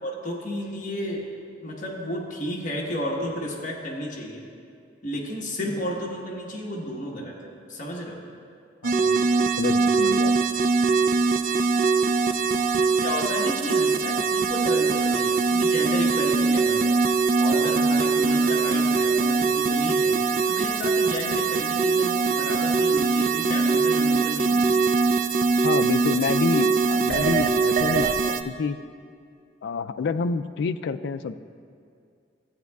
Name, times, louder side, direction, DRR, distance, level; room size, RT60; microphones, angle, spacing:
voice 1, 0.0-1.3 1.6-4.5 5.0-8.2 13.0-17.0 17.4-20.2 20.5-24.9, equal, 45° left, -2 dB, 1.3 m, -32 dB
voice 2, 8.8-10.4 25.6-28.8 29.6-31.4, left 5 dB, 65° left, 11 dB, 0.3 m, -28 dB
sound 1, 8.8-28.4, right 4 dB, 45° right, 0.4 m, -22 dB
15.0 x 9.0 x 2.3 m, 2.3 s
head